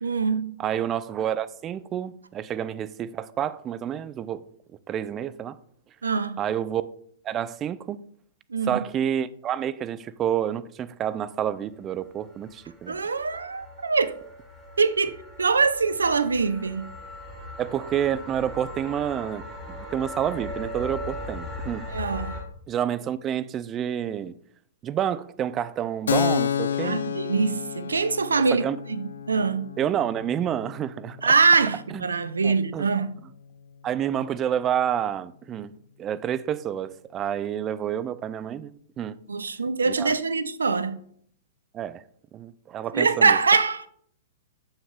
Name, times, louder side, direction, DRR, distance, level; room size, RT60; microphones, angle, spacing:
voice 1, 0.0-0.5 6.0-6.4 8.5-8.8 12.9-14.1 14.8-16.9 21.9-22.4 26.8-28.6 28.9-29.7 31.2-33.1 39.3-41.0 42.9-43.9, right 4 dB, 80° right, 0.5 m, -23 dB
voice 2, 0.6-4.4 4.9-5.6 6.4-6.8 7.2-8.0 8.7-13.0 17.6-19.4 19.7-21.9 22.7-24.3 24.8-27.0 28.5-28.8 29.8-31.3 31.9-32.1 32.4-32.9 33.8-35.7 36.0-39.2 39.9-40.1 41.7-42.0 42.3-43.4, right 10 dB, 25° right, 0.4 m, -29 dB
sound 1, 11.9-22.4, left 1 dB, 10° left, 2.6 m, -39 dB
Keyboard (musical), 26.1-33.4, left 8 dB, 70° left, 0.4 m, -31 dB
8.6 x 7.1 x 2.4 m
figure-of-eight pair, 110°, 0 cm